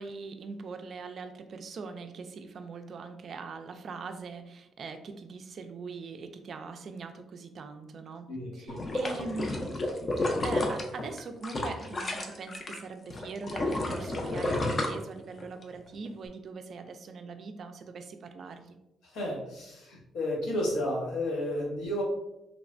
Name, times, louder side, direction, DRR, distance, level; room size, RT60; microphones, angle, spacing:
voice 1, 0.0-9.6 10.4-18.8, right 4 dB, 55° right, 7 dB, 0.3 m, -42 dB
voice 2, 8.3-8.8 19.0-22.0, left 1 dB, 85° left, -2 dB, 0.9 m, -32 dB
sound 1, 8.7-12.8 13.1-15.6 16.1-16.2, left 1 dB, 35° left, 0.5 m, -31 dB
3.1 x 2.1 x 2.5 m, 0.88 s
cardioid pair, 90°, 0 cm